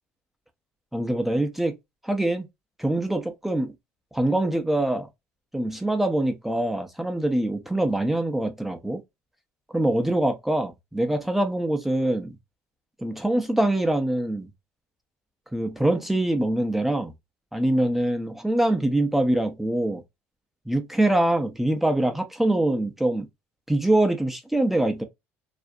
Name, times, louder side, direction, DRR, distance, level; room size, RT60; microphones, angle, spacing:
voice 1, 0.9-1.8 2.0-2.5 2.8-3.7 4.1-5.1 5.5-9.0 9.7-12.4 13.0-14.5 15.5-17.1 17.5-20.0 20.7-23.3 23.7-25.0, right 1 dB, 5° right, 0.5 m, -24 dB
2.4 x 2.0 x 2.6 m
supercardioid pair, 85°, 5 cm